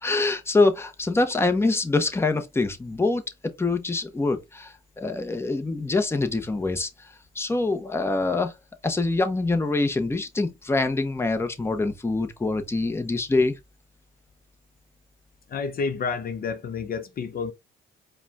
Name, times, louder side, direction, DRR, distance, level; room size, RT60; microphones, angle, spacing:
voice 1, 0.0-3.2 3.6-6.9 7.3-8.5 8.8-13.6, left 3 dB, 10° left, 0.7 m, -24 dB
voice 2, 15.5-17.5, left 5 dB, 50° left, 0.6 m, -29 dB
4.8 x 2.2 x 3.4 m
cardioid pair, 90°, 20 cm